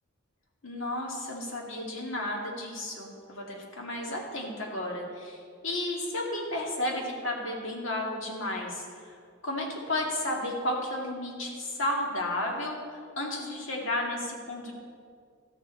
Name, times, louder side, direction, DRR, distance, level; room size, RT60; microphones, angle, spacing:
voice 1, 0.6-9.2 9.4-12.8 13.2-14.7, left 1 dB, 75° left, -1 dB, 2.2 m, -33 dB
13.0 x 9.7 x 4.4 m, 2.1 s
head